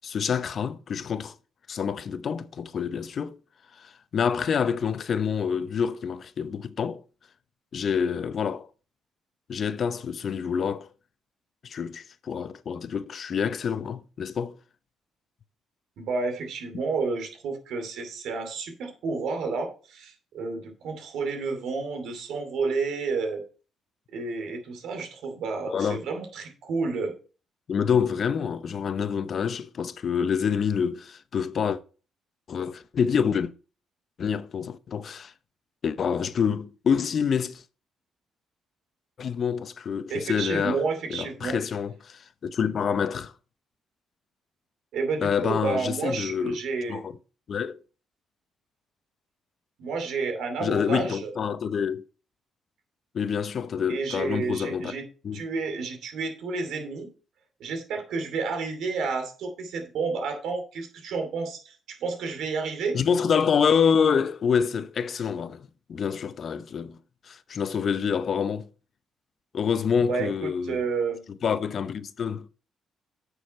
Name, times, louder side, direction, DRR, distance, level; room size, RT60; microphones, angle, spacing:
voice 1, 0.0-1.3 1.7-3.4 3.8-7.0 7.7-8.7 9.5-10.9 11.6-14.5 25.7-26.0 27.7-31.8 32.5-33.5 34.2-35.3 35.8-37.6 39.2-40.8 41.1-43.3 45.2-46.6 46.9-47.1 47.5-47.8 50.6-52.0 53.1-54.9 55.2-55.4 62.9-67.0 67.2-68.7 69.5-70.8 71.4-72.5, left 7 dB, 55° left, 0.7 m, -27 dB
voice 2, 16.0-23.4 24.1-27.1 40.1-41.6 44.9-47.0 49.8-51.3 53.9-55.0 55.3-57.1 57.6-63.0 70.1-71.3, right 4 dB, 80° right, 2.6 m, -30 dB
9.4 x 6.4 x 4.3 m
cardioid pair, 90°, 0 cm